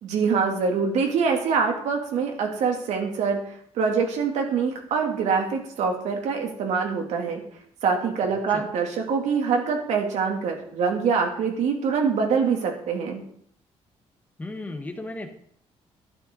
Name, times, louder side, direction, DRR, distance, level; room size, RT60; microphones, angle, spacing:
voice 1, 0.0-3.4 3.7-7.4 7.8-13.2, right 5 dB, 80° right, 1 dB, 3.0 m, -24 dB
voice 2, 8.3-8.6 14.4-15.3, left 2 dB, 15° left, 5 dB, 1.4 m, -35 dB
12.5 x 12.0 x 4.0 m, 0.64 s
cardioid pair, 165°, 12 cm